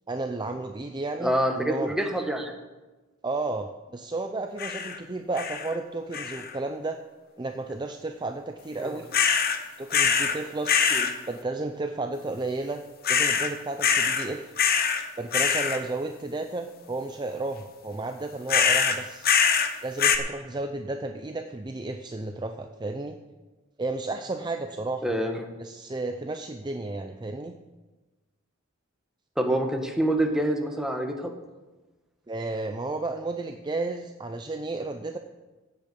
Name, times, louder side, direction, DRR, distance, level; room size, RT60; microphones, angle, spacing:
voice 1, 0.1-1.9 3.2-7.0 7.4-9.1 9.8-10.8 11.3-12.8 13.1-14.5 15.2-19.3 19.8-23.2 23.8-25.1 25.6-27.5 32.3-35.2, right 2 dB, 20° right, 6 dB, 0.5 m, -32 dB
voice 2, 1.2-2.5 8.8-8.9 10.9-11.1 25.0-25.4 29.4-31.3, right 1 dB, 5° right, 3 dB, 1.3 m, -26 dB
sound 1, 4.6-5.0 5.4-5.8 6.1-6.6 9.1-9.6 9.9-10.4 10.7-11.1 13.0-13.5 13.8-14.3 14.6-15.0 15.3-15.8 18.5-19.7 20.0-20.2, left 7 dB, 50° left, 1.0 m, -23 dB
15.5 x 8.3 x 5.3 m, 1.2 s
head